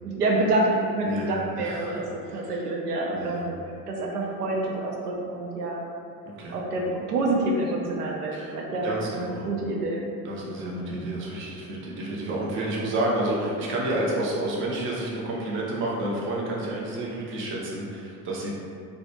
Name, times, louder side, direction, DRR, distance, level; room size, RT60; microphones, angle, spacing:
voice 1, 0.0-3.6 3.9-5.8 6.5-10.0 10.6-11.0, right 2 dB, 80° right, -1 dB, 0.6 m, -27 dB
voice 2, 1.0-2.6 3.1-3.4 6.4-6.6 8.3-8.6 8.8-9.5 10.2-18.5, right 1 dB, 25° right, -4 dB, 0.5 m, -30 dB
2.3 x 2.1 x 2.8 m, 2.3 s
figure-of-eight pair, 70°, 46 cm